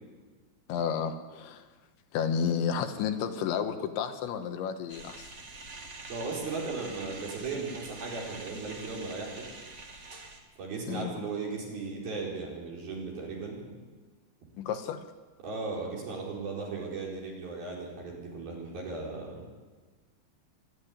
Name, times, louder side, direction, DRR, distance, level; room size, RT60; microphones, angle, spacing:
voice 1, 0.7-1.7 2.1-5.3 10.9-11.1 14.6-15.1, left 7 dB, 80° left, 7 dB, 3.5 m, -31 dB
sound 1, 4.9-10.4, right 3 dB, 35° right, 2.0 m, -45 dB
voice 2, 6.1-9.6 10.6-13.6 15.4-19.5, right 4 dB, 55° right, -2 dB, 6.5 m, -36 dB
25.5 x 12.0 x 9.9 m, 1.4 s
omnidirectional pair, 5.2 m